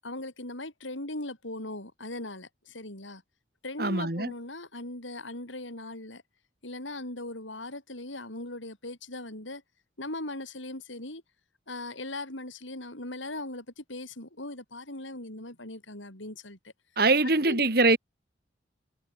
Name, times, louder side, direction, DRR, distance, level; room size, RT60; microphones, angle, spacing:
voice 1, 0.0-3.2 3.6-6.2 6.6-9.6 10.0-11.2 11.7-16.7 17.4-17.7, left 2 dB, 90° left, 7.6 m, -39 dB
voice 2, 3.8-4.3 17.0-18.0, right 3 dB, 50° right, 2.5 m, -23 dB
head